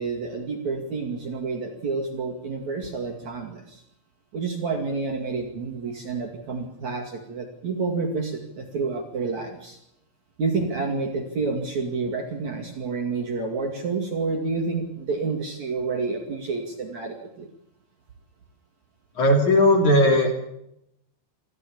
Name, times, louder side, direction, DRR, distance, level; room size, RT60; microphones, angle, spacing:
voice 1, 0.0-3.8 4.3-9.8 10.4-17.5, right 4 dB, 45° right, 2 dB, 3.0 m, -29 dB
voice 2, 19.2-20.5, left 1 dB, 45° left, 4 dB, 4.3 m, -18 dB
26.0 x 15.0 x 8.6 m, 0.80 s
omnidirectional pair, 5.4 m